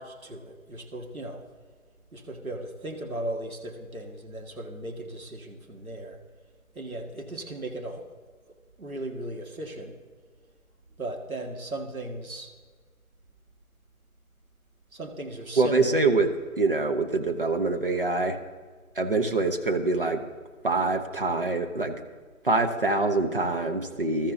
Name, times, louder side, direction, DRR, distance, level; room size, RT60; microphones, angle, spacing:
voice 1, 0.0-1.4 2.1-6.2 6.8-8.1 8.8-10.0 11.0-12.5 14.9-16.0, right 1 dB, 75° right, 2 dB, 2.1 m, -37 dB
voice 2, 15.6-18.4 18.9-20.2 20.6-22.0 22.4-24.3, right 3 dB, 40° right, 5 dB, 0.9 m, -25 dB
20.0 x 13.5 x 2.7 m, 1.5 s
figure-of-eight pair, 160°, 42 cm